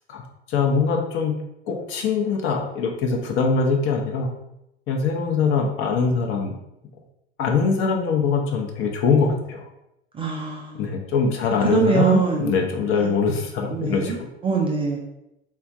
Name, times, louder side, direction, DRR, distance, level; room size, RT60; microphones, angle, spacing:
voice 1, 0.5-1.4 1.7-4.3 4.9-6.5 7.4-9.7 10.8-14.1, left 5 dB, 40° left, 1 dB, 0.7 m, -22 dB
voice 2, 10.1-10.9 11.6-12.6 13.7-14.2 14.4-15.0, right 5 dB, 20° right, -1 dB, 0.4 m, -23 dB
3.5 x 2.2 x 2.5 m, 0.84 s
figure-of-eight pair, 75°, 31 cm